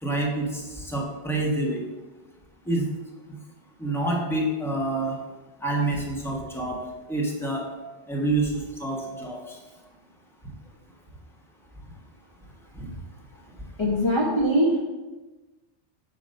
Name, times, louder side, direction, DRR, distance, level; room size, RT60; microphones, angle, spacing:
voice 1, 0.0-1.8 2.6-2.9 3.8-5.2 5.6-6.8 7.1-7.7 8.1-9.6 12.7-12.9, right 2 dB, ahead, -2 dB, 1.2 m, -27 dB
voice 2, 13.8-14.8, equal, 25° left, -5 dB, 1.0 m, -22 dB
8.8 x 3.0 x 6.4 m, 1.2 s
omnidirectional pair, 1.2 m